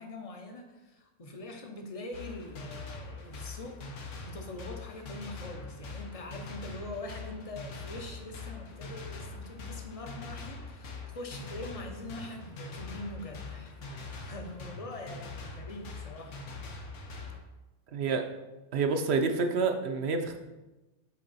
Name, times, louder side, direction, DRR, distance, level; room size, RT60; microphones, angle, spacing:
voice 1, 0.0-3.8 4.2-16.4 16.7-16.9, left 2 dB, 40° left, 4 dB, 0.6 m, -43 dB
sound 1, 2.1-17.4, left 3 dB, 75° left, 1.2 m, -43 dB
voice 2, 17.9-18.2 18.7-20.4, right 4 dB, 65° right, 5 dB, 0.8 m, -28 dB
7.4 x 3.4 x 4.0 m, 1.1 s
omnidirectional pair, 1.3 m